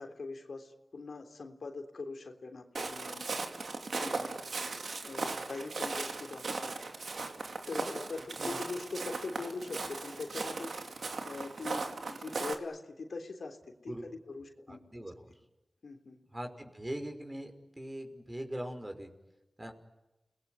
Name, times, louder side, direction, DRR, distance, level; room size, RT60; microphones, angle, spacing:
voice 1, 0.0-3.4 4.0-4.3 5.0-6.7 7.7-14.8 15.8-16.2, left 3 dB, 85° left, 4 dB, 3.3 m, -42 dB
Walk footsteps, 2.8-12.6, right 3 dB, 85° right, 2.6 m, -38 dB
voice 2, 14.7-15.3 16.3-19.1 19.6-19.7, right 1 dB, 25° right, 5 dB, 5.6 m, -41 dB
30.0 x 20.0 x 9.5 m, 1.0 s
wide cardioid pair, 55°, 0 cm